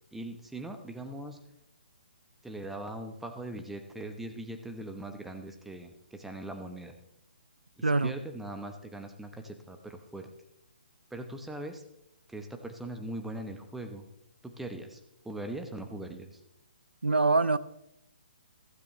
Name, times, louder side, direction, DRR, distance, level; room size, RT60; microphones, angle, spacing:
voice 1, 0.1-1.4 2.4-6.9 7.8-10.3 11.1-11.8 12.3-14.1 14.4-16.4, right 1 dB, 5° right, 1.0 m, -41 dB
voice 2, 7.8-8.1 17.0-17.6, right 3 dB, 85° right, 0.6 m, -24 dB
15.0 x 13.0 x 3.2 m
figure-of-eight pair, 135°, 6 cm